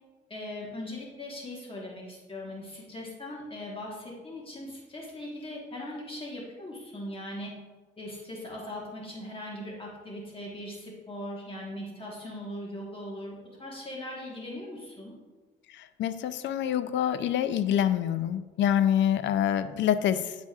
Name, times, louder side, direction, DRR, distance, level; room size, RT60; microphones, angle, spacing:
voice 1, 0.3-7.6 8.0-15.2, left 1 dB, 25° left, -3 dB, 1.4 m, -40 dB
voice 2, 15.7-20.4, left 10 dB, 70° left, 11 dB, 0.4 m, -26 dB
9.6 x 4.1 x 2.4 m, 1.2 s
cardioid pair, 90°, 20 cm